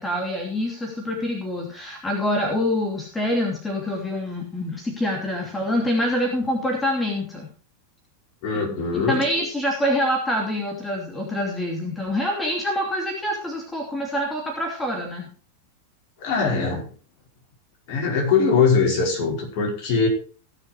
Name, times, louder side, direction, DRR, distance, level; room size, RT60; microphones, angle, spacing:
voice 1, 0.0-7.5 8.9-15.3, left 1 dB, 10° left, 1 dB, 2.8 m, -26 dB
voice 2, 8.4-9.2 16.2-16.9 17.9-20.1, left 5 dB, 45° left, 0 dB, 5.1 m, -21 dB
17.5 x 6.8 x 4.6 m, 0.39 s
figure-of-eight pair, 90°, 0 cm